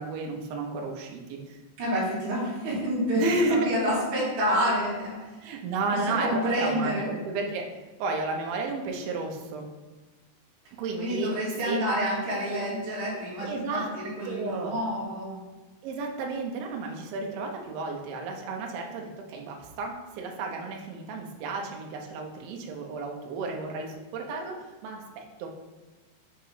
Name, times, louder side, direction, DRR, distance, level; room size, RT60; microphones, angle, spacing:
voice 1, 0.0-1.6 3.2-3.7 5.4-7.7 8.0-9.7 10.8-11.3 11.7-11.8 13.4-13.9 14.3-14.8 15.8-25.5, right 3 dB, 75° right, 1 dB, 2.4 m, -32 dB
voice 2, 1.8-5.2 6.1-7.1 11.0-15.4, equal, 50° right, -8 dB, 2.7 m, -28 dB
6.8 x 3.0 x 4.8 m, 1.2 s
omnidirectional pair, 5.1 m